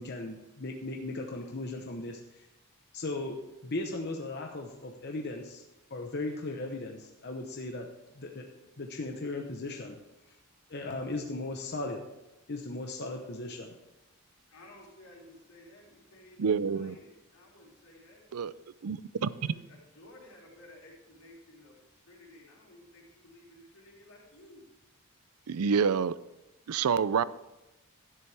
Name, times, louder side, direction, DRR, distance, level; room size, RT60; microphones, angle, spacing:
voice 1, 0.0-2.5 2.9-3.4 3.6-5.6 5.9-7.9 8.2-10.0 10.7-12.0 12.5-13.7, left 2 dB, 50° left, 2 dB, 0.9 m, -37 dB
voice 2, 14.5-18.2 19.3-21.8 22.1-24.6, left 1 dB, 80° left, -3 dB, 3.8 m, -55 dB
voice 3, 16.4-17.0 18.3-18.5 18.8-19.0 19.2-19.3 25.5-26.1 26.7-27.2, right 6 dB, 80° right, 17 dB, 0.4 m, -27 dB
12.0 x 10.0 x 3.4 m, 1.0 s
head